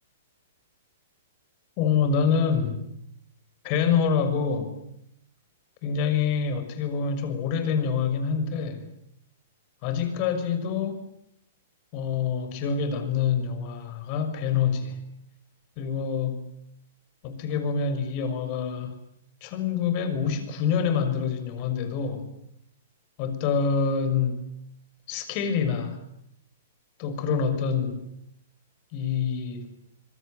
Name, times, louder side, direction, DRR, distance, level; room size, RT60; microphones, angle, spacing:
voice 1, 1.8-2.9 3.6-4.7 5.8-8.8 9.8-11.0 11.9-15.0 15.8-16.4 17.2-19.0 19.4-22.3 23.2-24.4 25.1-26.0 27.0-28.0 28.9-29.7, left 6 dB, 40° left, 9 dB, 6.1 m, -26 dB
26.0 x 23.0 x 9.4 m, 0.77 s
figure-of-eight pair, 110°, 0 cm